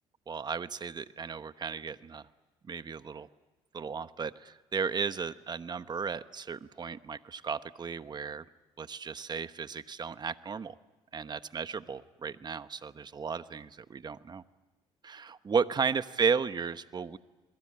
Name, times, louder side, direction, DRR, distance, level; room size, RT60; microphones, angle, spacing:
voice 1, 0.3-2.2 2.7-3.3 3.7-8.4 8.8-10.7 11.1-14.4 15.0-17.2, right 5 dB, 35° right, 13 dB, 1.1 m, -34 dB
28.0 x 21.5 x 8.9 m, 1.1 s
supercardioid pair, 75°, 12 cm